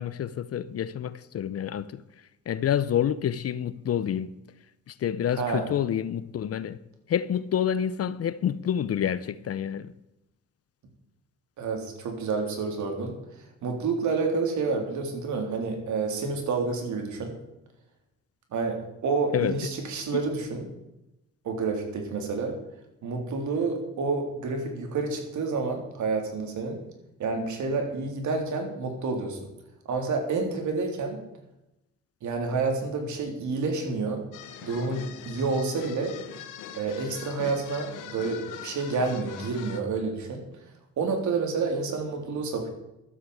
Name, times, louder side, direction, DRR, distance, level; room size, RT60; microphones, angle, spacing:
voice 1, 0.0-2.0 2.5-4.3 4.9-6.8 7.1-9.9 19.3-19.6 20.1-20.2, left 9 dB, 50° left, 0.7 m, -28 dB
voice 2, 5.3-5.7 11.6-13.2 13.6-17.3 18.5-20.7 21.4-22.6 23.0-26.8 27.2-29.4 29.9-31.2 32.2-34.2 34.6-36.2 36.7-40.4 41.0-42.7, right 4 dB, 70° right, 3.6 m, -29 dB
sound 1, 34.3-39.8, left 9 dB, 90° left, 1.3 m, -42 dB
12.5 x 8.3 x 8.1 m
cardioid pair, 90°, 30 cm